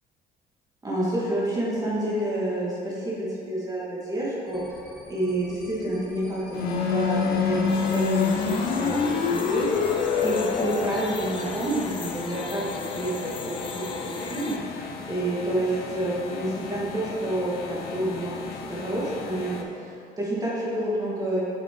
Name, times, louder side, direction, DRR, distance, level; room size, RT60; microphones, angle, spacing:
voice 1, 0.8-4.8 5.1-21.4, right 1 dB, 20° right, -7 dB, 1.6 m, -29 dB
sound 1, 4.5-12.2, equal, ahead, 1.4 m, -48 dB
sound 2, 6.5-19.6, left 6 dB, 65° left, 0.6 m, -29 dB
sound 3, 7.7-14.6, left 5 dB, 30° left, 0.5 m, -38 dB
6.6 x 6.0 x 3.6 m, 2.7 s
cardioid pair, 110°, 17 cm